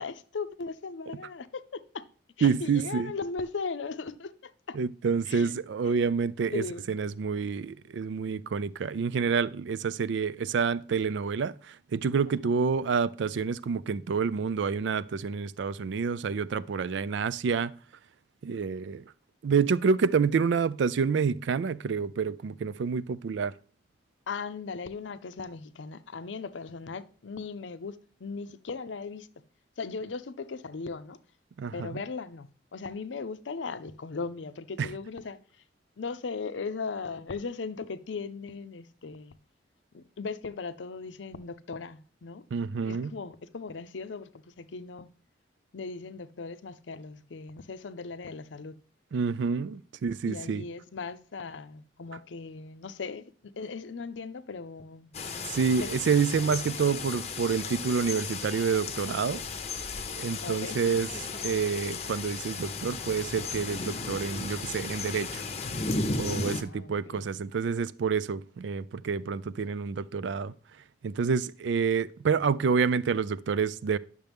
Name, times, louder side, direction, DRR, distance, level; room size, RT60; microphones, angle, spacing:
voice 1, 0.0-2.0 2.4-4.8 5.3-5.5 6.5-6.9 24.3-29.3 29.8-31.2 31.7-35.4 36.0-39.4 39.9-42.4 42.8-45.1 45.7-48.8 50.2-55.1 55.8-56.0 60.4-60.8 66.5-67.2, left 4 dB, 80° left, 0.6 m, -38 dB
voice 2, 2.4-3.1 4.7-17.7 18.4-19.0 19.4-23.5 31.6-32.0 34.8-34.9 42.5-43.2 49.1-50.6 55.5-59.4 60.2-65.4 66.1-70.5 71.0-74.0, right 5 dB, 70° right, 0.4 m, -28 dB
sound 1, 55.1-66.6, left 4 dB, 35° left, 0.7 m, -35 dB
10.5 x 6.7 x 3.5 m
head